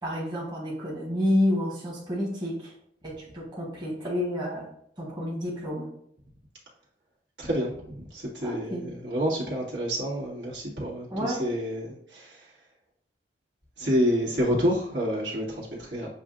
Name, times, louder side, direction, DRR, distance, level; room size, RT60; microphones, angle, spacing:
voice 1, 0.0-2.7 3.0-4.7 5.0-5.9 8.4-8.9 11.1-11.5, left 1 dB, 25° right, -5 dB, 1.4 m, -29 dB
voice 2, 7.4-12.5 13.8-16.1, equal, 75° right, -5 dB, 1.9 m, -28 dB
7.7 x 2.6 x 2.5 m, 0.66 s
head